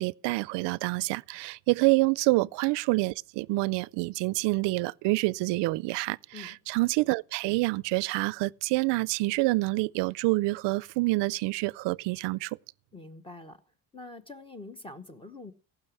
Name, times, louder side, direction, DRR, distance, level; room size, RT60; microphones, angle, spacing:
voice 1, 0.0-12.6, right 22 dB, 65° right, 0.5 m, -27 dB
voice 2, 12.9-13.6 13.9-15.5, left 3 dB, 10° left, 1.0 m, -45 dB
18.5 x 6.1 x 7.1 m
cardioid pair, 165°, 46 cm